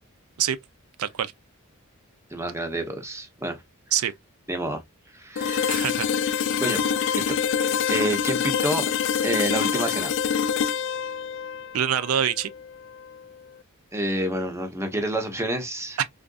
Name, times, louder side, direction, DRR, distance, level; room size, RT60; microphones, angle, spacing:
voice 1, 1.0-1.3 3.9-4.1 5.7-6.1 11.7-12.5, right 9 dB, 75° right, 0.4 m, -25 dB
voice 2, 2.3-3.6 4.5-4.8 5.1-5.8 6.6-6.8 7.1-7.4 7.6-8.8 9.2-10.1 13.9-16.0, right 1 dB, 15° right, 0.8 m, -28 dB
sound 1, 5.4-13.2, left 7 dB, 60° left, 0.3 m, -26 dB
3.6 x 2.5 x 2.3 m
head